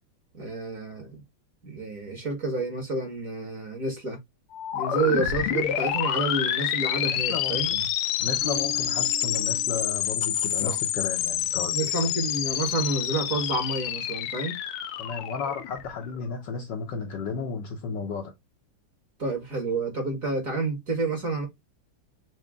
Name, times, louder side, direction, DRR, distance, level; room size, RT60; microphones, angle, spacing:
voice 1, 0.3-1.2 1.6-4.2 4.7-7.7 10.6-10.8 11.7-14.6 19.2-21.5, right 3 dB, 45° right, 1.6 m, -29 dB
sound 1, 4.5-16.2, left 11 dB, 85° left, 1.5 m, -28 dB
voice 2, 7.1-7.9 8.2-11.8 15.0-18.3, left 5 dB, 70° left, 1.2 m, -33 dB
Bass guitar, 8.4-11.1, right 8 dB, 85° right, 2.1 m, -43 dB
6.1 x 2.2 x 3.4 m
omnidirectional pair, 2.4 m